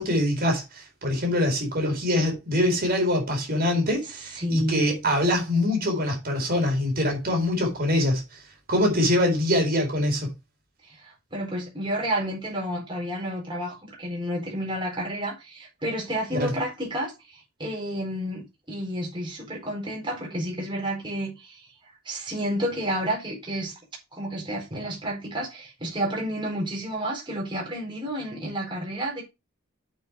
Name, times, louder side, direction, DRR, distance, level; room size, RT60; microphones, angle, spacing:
voice 1, 0.0-8.4 8.7-10.3 16.3-16.5, left 1 dB, 45° right, 4.4 m, -24 dB
voice 2, 4.3-4.9 10.8-21.6 22.0-23.7 24.1-29.2, right 1 dB, 25° right, 4.5 m, -30 dB
8.2 x 6.9 x 4.6 m
head